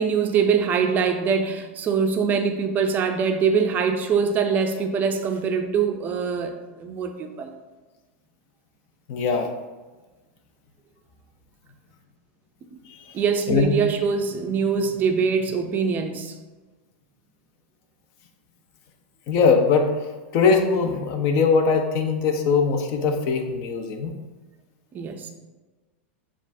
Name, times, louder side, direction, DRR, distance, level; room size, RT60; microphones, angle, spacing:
voice 1, 0.0-6.5 6.8-7.5 12.7-12.8 13.1-16.3 24.9-25.3, right 6 dB, 25° right, 6 dB, 0.4 m, -23 dB
voice 2, 9.1-9.5 12.9-13.1 13.5-13.8 19.3-19.9 20.3-24.1, left 5 dB, 45° left, 5 dB, 0.6 m, -21 dB
7.0 x 2.4 x 2.6 m, 1.2 s
supercardioid pair, 135°, 7 cm